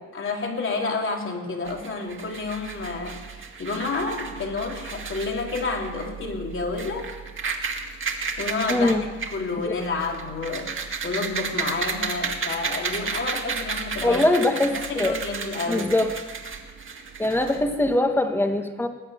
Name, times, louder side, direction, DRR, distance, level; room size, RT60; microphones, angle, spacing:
voice 1, 0.1-3.2 3.6-7.1 8.4-9.0 9.3-14.2 14.6-15.9, left 3 dB, 40° left, 1 dB, 3.2 m, -29 dB
sound 1, 1.6-17.9, right 5 dB, 40° right, 2.0 m, -33 dB
voice 2, 8.7-9.0 9.7-9.8 14.0-15.2 15.7-16.1 17.2-18.9, left 1 dB, 5° left, 6 dB, 1.7 m, -22 dB
20.5 x 8.9 x 8.0 m, 1.3 s
cardioid pair, 90°, 30 cm